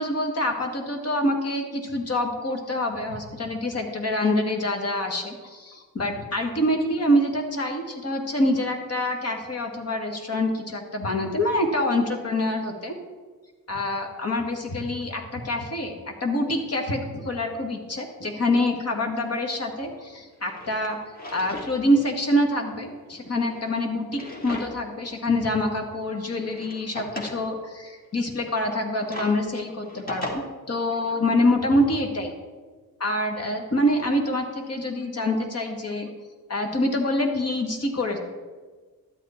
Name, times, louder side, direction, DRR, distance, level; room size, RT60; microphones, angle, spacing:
voice 1, 0.0-12.9 13.7-21.0 21.3-32.3 33.0-36.1 36.5-38.2, left 1 dB, 40° left, 3 dB, 1.8 m, -26 dB
Drawer open or close, 19.7-19.8 20.3-21.7 22.1-22.2 23.2-25.0 25.4-25.5 26.2-27.4 28.6-30.3, left 1 dB, 25° left, 2.1 m, -38 dB
12.5 x 8.2 x 4.3 m, 1.4 s
cardioid pair, 90°, 37 cm